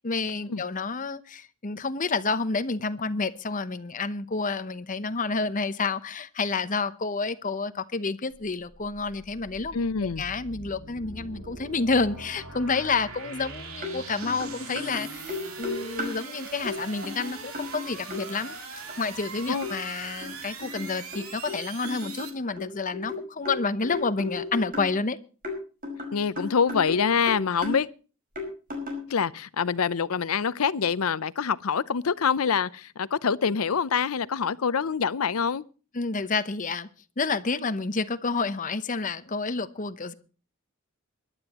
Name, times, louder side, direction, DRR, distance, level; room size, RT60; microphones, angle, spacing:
voice 1, 0.0-25.2 35.9-36.9 37.2-40.1, left 4 dB, 40° left, 0.8 m, -29 dB
sound 1, 8.3-22.3, right 4 dB, 85° right, 2.9 m, -41 dB
voice 2, 9.7-10.2 19.5-19.7 26.1-27.9 29.1-35.6, left 6 dB, 90° left, 0.6 m, -25 dB
sound 2, 13.8-14.0 14.2-16.2 16.6-16.8 17.0-18.2 18.9-19.0 19.6-19.7 20.2-21.6 21.8-24.9 25.4-27.0 27.3-27.8 28.4-29.1, left 3 dB, 40° right, 5.4 m, -34 dB
23.0 x 11.5 x 3.0 m
head